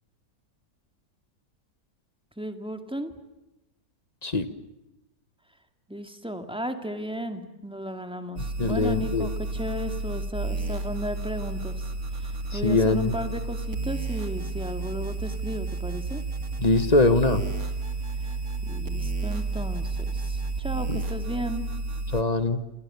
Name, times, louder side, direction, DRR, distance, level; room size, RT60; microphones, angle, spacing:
voice 1, 2.4-3.1 5.9-11.8 12.1-16.2 18.2-18.3 18.6-21.7, equal, 5° right, 7 dB, 2.1 m, -34 dB
sound 1, 8.4-22.2, right 3 dB, 55° right, 2.5 m, -31 dB
voice 2, 8.6-9.3 12.5-13.1 16.6-17.4 20.9-21.0 22.1-22.6, left 2 dB, 25° left, 11 dB, 1.3 m, -22 dB
28.5 x 28.0 x 7.0 m, 0.97 s
omnidirectional pair, 1.9 m